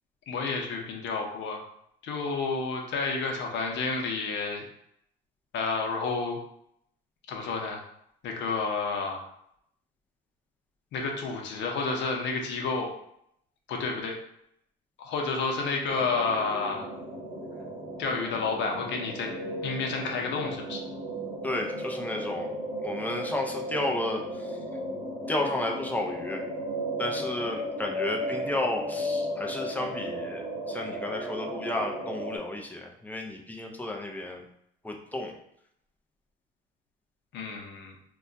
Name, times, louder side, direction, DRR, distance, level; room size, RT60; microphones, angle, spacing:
voice 1, 0.3-1.6 2.0-4.6 5.5-6.4 7.3-7.8 8.2-9.2 10.9-12.9 13.7-14.1 15.0-16.9 18.0-19.3 19.6-20.8 37.3-38.0, left 4 dB, 60° left, 1 dB, 0.7 m, -30 dB
sound 1, 15.9-32.4, equal, 35° right, 0.9 m, -35 dB
voice 2, 21.4-22.5 22.8-24.6 25.3-26.4 27.0-34.5 34.8-35.4, left 1 dB, 10° left, 1 dB, 0.3 m, -32 dB
2.3 x 2.2 x 3.8 m, 0.73 s
cardioid pair, 145°, 21 cm